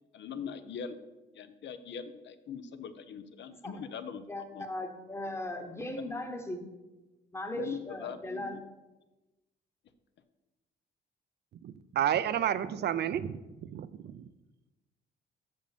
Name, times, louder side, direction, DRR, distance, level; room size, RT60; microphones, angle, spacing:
voice 1, 0.1-1.0 1.3-4.2 4.5-4.7 6.0-6.1 7.5-8.6, left 7 dB, 65° left, 11 dB, 0.7 m, -41 dB
voice 2, 4.3-6.7 7.3-8.6, left 1 dB, 15° left, 5 dB, 1.1 m, -38 dB
voice 3, 11.6-14.3, right 10 dB, 55° right, 14 dB, 0.5 m, -31 dB
6.3 x 5.2 x 6.7 m, 1.1 s
cardioid pair, 90°, 20 cm